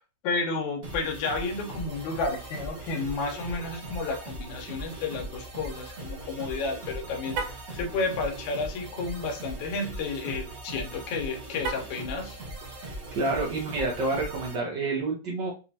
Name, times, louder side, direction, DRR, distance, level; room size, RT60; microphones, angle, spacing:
voice 1, 0.2-12.4, left 3 dB, 80° left, 3 dB, 2.3 m, -31 dB
sound 1, 0.8-14.5, right 1 dB, 50° right, 1.1 m, -40 dB
Car, 7.3-7.7 11.6-12.1, right 5 dB, 70° right, 1.7 m, -34 dB
voice 2, 12.8-15.5, right 3 dB, 90° right, -2 dB, 0.9 m, -29 dB
5.8 x 3.0 x 2.8 m, 0.32 s
omnidirectional pair, 3.3 m